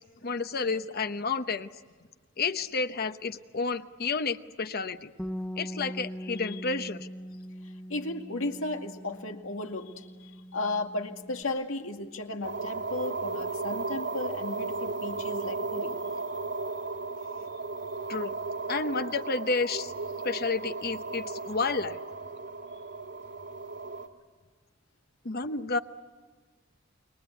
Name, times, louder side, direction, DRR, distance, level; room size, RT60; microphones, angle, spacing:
voice 1, 0.0-1.7 2.4-5.1 5.6-7.1 18.1-18.3 18.7-19.9 20.2-22.0 25.2-25.8, left 4 dB, 50° left, 10 dB, 0.9 m, -31 dB
Bass guitar, 5.2-11.4, equal, 5° left, 1.2 m, -41 dB
voice 2, 7.9-16.0, left 2 dB, 90° left, 4 dB, 2.2 m, -35 dB
sound 1, 12.4-24.1, right 3 dB, 65° right, 2.2 m, -35 dB
29.0 x 23.0 x 8.2 m, 1.5 s
head